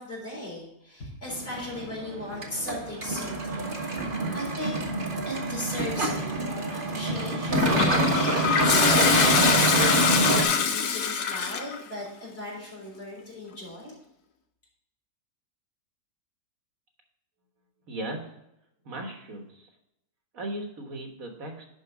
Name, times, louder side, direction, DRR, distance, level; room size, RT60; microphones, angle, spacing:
voice 1, 0.0-3.6 4.1-4.8 5.3-8.9 9.5-13.9, left 1 dB, 40° left, -4 dB, 4.0 m, -37 dB
sound 1, 1.3-10.4, right 2 dB, 35° right, 1.5 m, -27 dB
Toilet flush, 7.5-11.8, left 7 dB, 80° left, 1.4 m, -24 dB
voice 2, 17.9-18.3 18.9-19.7 20.3-21.7, right 1 dB, 60° right, 3 dB, 1.7 m, -37 dB
11.0 x 5.0 x 4.7 m, 0.82 s
omnidirectional pair, 1.6 m